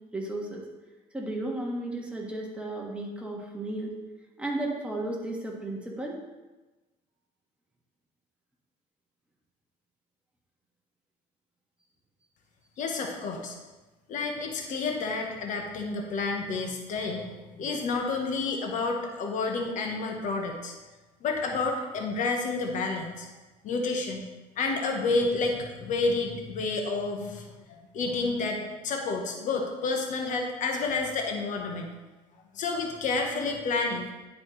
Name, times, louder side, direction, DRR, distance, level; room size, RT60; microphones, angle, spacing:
voice 1, 0.1-0.6 1.1-3.9 4.4-6.2, right 1 dB, 10° right, -2 dB, 1.5 m, -34 dB
voice 2, 12.8-13.5 14.1-20.7 21.2-23.3 23.6-24.2 24.6-27.5 27.9-31.9 32.5-34.1, left 3 dB, 60° left, 2 dB, 1.0 m, -30 dB
10.5 x 4.2 x 3.2 m, 1.2 s
supercardioid pair, 95°, 15 cm